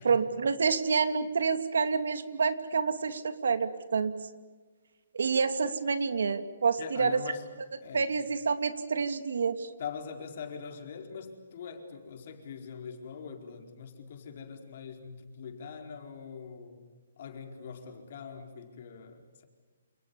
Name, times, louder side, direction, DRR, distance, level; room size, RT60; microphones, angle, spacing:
voice 1, 0.0-4.1 5.1-7.2 7.9-9.7, right 5 dB, 80° right, 10 dB, 2.7 m, -28 dB
voice 2, 6.8-7.4 7.8-8.1 9.8-16.8 17.2-19.4, left 6 dB, 45° left, 4 dB, 4.6 m, -43 dB
29.0 x 28.5 x 7.2 m, 1.4 s
hypercardioid pair, 170°, 0 cm